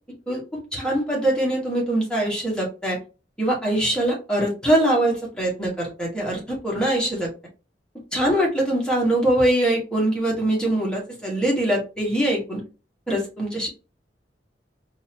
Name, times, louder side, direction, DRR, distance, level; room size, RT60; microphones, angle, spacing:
voice 1, 0.3-3.0 3.4-7.3 8.1-12.6 13.1-13.7, right 1 dB, 5° left, -3 dB, 1.5 m, -23 dB
4.0 x 2.7 x 2.9 m, 0.31 s
head